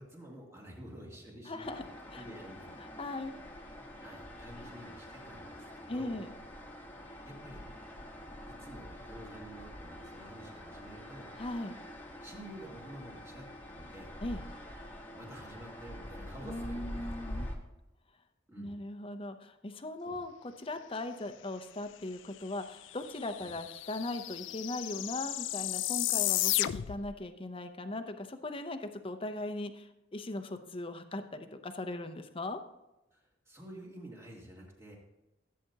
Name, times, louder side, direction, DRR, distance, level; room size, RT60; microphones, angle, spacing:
voice 1, 0.0-1.7 2.1-2.8 4.0-6.2 7.2-7.6 8.5-11.3 12.2-14.1 15.1-17.2 18.5-18.8 20.0-20.2 23.4-23.5 33.1-35.0, right 1 dB, 15° right, -2 dB, 2.1 m, -49 dB
voice 2, 1.5-1.8 2.1-2.2 3.0-3.3 4.6-4.7 5.9-6.3 11.4-11.8 14.2-14.4 16.4-17.5 18.6-32.6, left 2 dB, 30° left, 8 dB, 0.7 m, -39 dB
sound 1, 1.6-17.6, left 1 dB, 10° left, 1.2 m, -46 dB
sound 2, 22.6-22.7 22.9-27.1, left 15 dB, 75° left, 0.4 m, -33 dB
15.5 x 8.4 x 2.9 m, 0.96 s
head